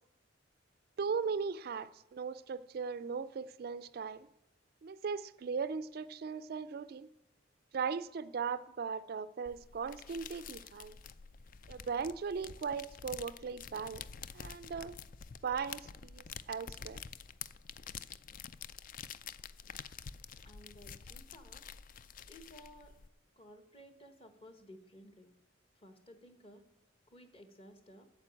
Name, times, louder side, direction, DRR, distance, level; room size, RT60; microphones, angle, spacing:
voice 1, 1.0-4.3 4.8-7.1 7.7-11.0 11.7-14.0 14.3-15.0 15.4-17.0, right 5 dB, 50° right, 0.3 m, -38 dB
sound 1, 9.5-23.1, left 7 dB, 45° left, 0.4 m, -48 dB
voice 2, 20.4-21.7 22.3-22.9 23.4-25.3 25.8-26.6 27.1-28.1, equal, 30° left, 1.2 m, -56 dB
9.0 x 7.1 x 8.9 m
head